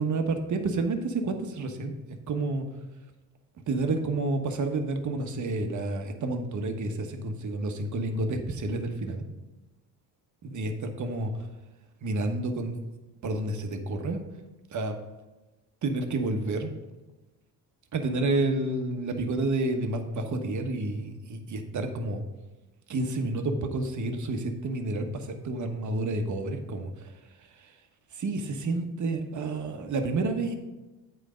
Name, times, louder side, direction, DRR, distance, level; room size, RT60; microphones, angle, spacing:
voice 1, 0.0-1.9 2.3-2.7 3.7-9.2 10.4-11.3 12.0-12.7 13.2-14.2 14.7-15.0 15.8-16.7 17.9-22.2 22.9-26.9 28.1-30.5, right 2 dB, 45° right, 5 dB, 1.2 m, -29 dB
8.4 x 4.5 x 5.1 m, 1.1 s
supercardioid pair, 70°, 41 cm